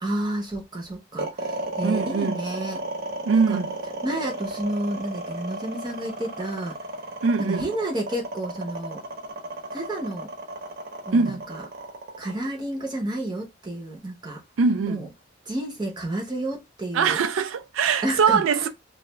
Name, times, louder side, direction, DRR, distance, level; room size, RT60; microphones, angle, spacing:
voice 1, 0.0-2.8 3.3-3.6 4.0-6.8 7.5-9.0 9.7-10.3 11.1-11.6 12.2-14.4 14.8-15.1 15.5-17.2 18.0-18.7, right 1 dB, 20° right, 0.7 m, -30 dB
sound 1, 1.2-13.4, right 2 dB, 50° right, 0.9 m, -33 dB
voice 2, 1.8-2.4 3.2-3.8 7.2-7.7 11.1-11.4 14.6-15.1 16.9-18.7, right 5 dB, 75° right, 0.4 m, -22 dB
2.3 x 2.2 x 2.9 m
head